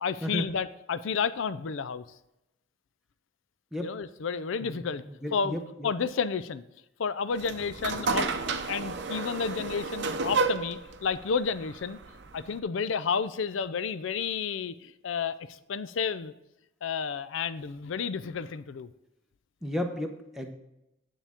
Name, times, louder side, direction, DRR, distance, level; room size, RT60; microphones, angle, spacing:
voice 1, 0.0-2.0 3.8-5.0 5.3-6.6 7.0-12.0 12.3-16.3 16.8-18.9, left 6 dB, 70° left, 15 dB, 0.4 m, -31 dB
voice 2, 4.6-5.9 19.6-20.5, left 1 dB, ahead, 3 dB, 0.7 m, -34 dB
sound 1, 7.3-12.6, right 4 dB, 55° right, 0.6 m, -32 dB
9.8 x 7.2 x 3.5 m, 0.91 s
head